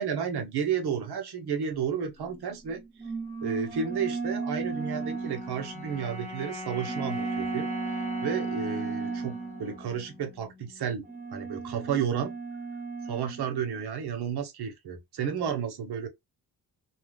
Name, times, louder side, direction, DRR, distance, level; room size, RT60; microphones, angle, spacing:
voice 1, 0.0-2.8 3.4-7.7 8.2-11.1 11.3-12.4 13.1-16.1, right 7 dB, 80° right, 1.0 m, -32 dB
sound 1, 2.1-6.2 6.8-10.1 11.0-13.9, right 4 dB, 20° right, 0.9 m, -35 dB
sound 2, 4.7-11.1, left 2 dB, 15° left, 0.9 m, -41 dB
2.3 x 2.3 x 3.4 m
cardioid pair, 110°, 38 cm